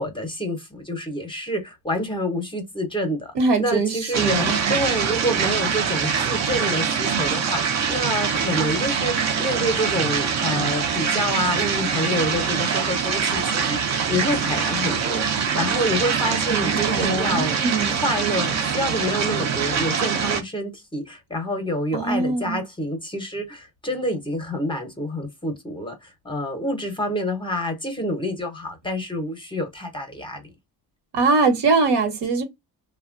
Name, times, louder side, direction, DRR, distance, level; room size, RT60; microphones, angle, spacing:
voice 1, 0.0-3.3 3.6-17.6 17.9-30.4, equal, 10° left, 0.6 m, -27 dB
voice 2, 3.3-4.8 16.5-18.0 21.9-22.6 31.1-32.4, right 3 dB, 75° right, 1.0 m, -22 dB
sound 1, 4.1-20.4, right 6 dB, 40° right, 0.4 m, -24 dB
3.1 x 2.1 x 2.4 m
cardioid pair, 180°, 41 cm